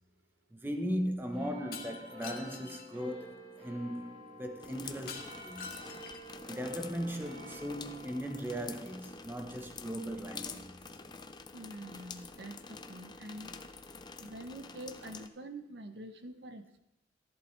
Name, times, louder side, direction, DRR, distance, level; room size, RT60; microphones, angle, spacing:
voice 1, 0.5-5.7 6.3-10.8, equal, 10° right, 0.9 m, -38 dB
sound 1, 1.3-14.2 14.9-15.0, equal, 35° right, 3.7 m, -53 dB
Shatter, 1.7-2.9 5.1-6.4, left 5 dB, 55° left, 1.2 m, -46 dB
sound 2, 4.6-15.3, left 4 dB, 25° left, 0.5 m, -48 dB
voice 2, 11.5-13.5 14.2-16.8, right 1 dB, 70° right, 0.8 m, -46 dB
13.5 x 11.0 x 3.2 m
head